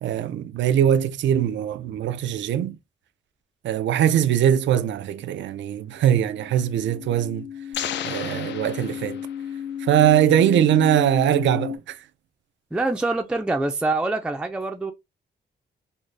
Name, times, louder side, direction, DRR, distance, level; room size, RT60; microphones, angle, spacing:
voice 1, 0.0-2.8 3.6-7.5 8.0-9.3 9.8-12.0, right 10 dB, 85° right, 0.4 m, -21 dB
sound 1, 6.0-11.8, left 9 dB, 35° left, 0.6 m, -34 dB
sound 2, 7.7-9.6, left 10 dB, 75° left, 0.4 m, -33 dB
voice 2, 12.7-14.9, right 2 dB, 5° right, 0.3 m, -25 dB
3.8 x 2.0 x 3.2 m
wide cardioid pair, 145°, 18 cm